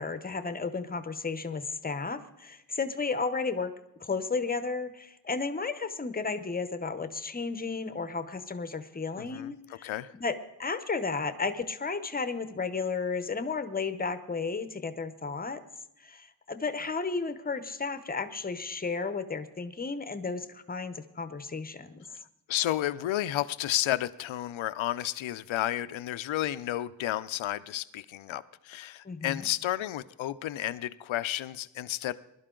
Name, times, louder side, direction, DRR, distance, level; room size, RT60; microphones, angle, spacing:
voice 1, 0.0-3.7 4.0-9.9 10.2-15.6 16.0-22.0 29.0-29.5, left 4 dB, 20° left, 11 dB, 0.8 m, -33 dB
voice 2, 9.2-10.1 22.5-32.1, left 13 dB, 85° left, 15 dB, 0.7 m, -32 dB
21.5 x 12.0 x 3.8 m, 0.85 s
wide cardioid pair, 155°, 46 cm